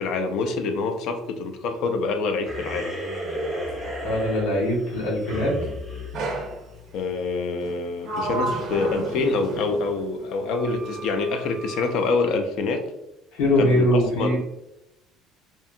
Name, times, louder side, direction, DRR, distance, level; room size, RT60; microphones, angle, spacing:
voice 1, 0.0-2.9 6.9-12.8 13.6-14.3, left 3 dB, 55° left, 7 dB, 0.4 m, -26 dB
sound 1, 2.4-7.1, equal, 5° right, 0.7 m, -33 dB
voice 2, 4.0-5.5 13.3-14.4, left 1 dB, 90° left, -4 dB, 1.0 m, -22 dB
Sliding door, 6.1-6.6 7.6-10.0 10.5-11.9, right 2 dB, 45° right, 0.5 m, -32 dB
2.7 x 2.3 x 2.5 m, 0.87 s
cardioid pair, 175°, 0 cm